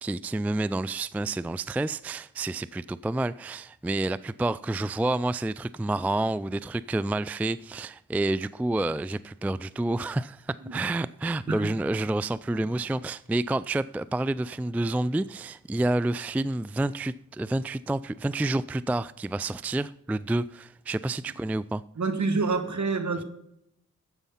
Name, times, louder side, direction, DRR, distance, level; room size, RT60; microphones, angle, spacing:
voice 1, 0.0-21.8, right 2 dB, 5° right, 0.3 m, -29 dB
voice 2, 22.0-23.2, right 4 dB, 55° right, 2.0 m, -28 dB
12.0 x 8.2 x 5.7 m
cardioid pair, 45°, 34 cm